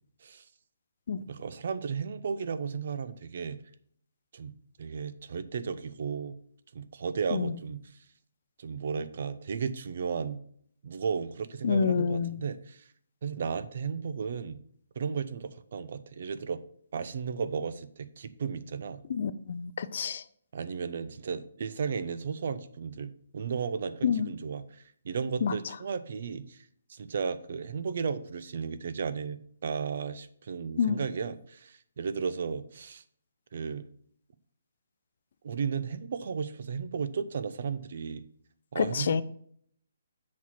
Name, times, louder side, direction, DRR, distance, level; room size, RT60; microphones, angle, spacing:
voice 1, 1.2-3.6 4.3-4.5 4.8-6.4 6.7-8.0 8.6-10.4 10.8-12.9 13.2-14.6 15.0-16.6 16.9-19.0 20.5-33.0 33.5-33.9 35.4-38.2 38.7-39.2, right 6 dB, 55° right, 13 dB, 0.6 m, -34 dB
voice 2, 11.6-12.4 19.1-20.2 24.0-24.3 25.4-25.5 30.8-31.0 38.8-39.2, left 6 dB, 50° left, 15 dB, 0.5 m, -27 dB
7.3 x 4.3 x 5.8 m, 0.63 s
hypercardioid pair, 160°, 0 cm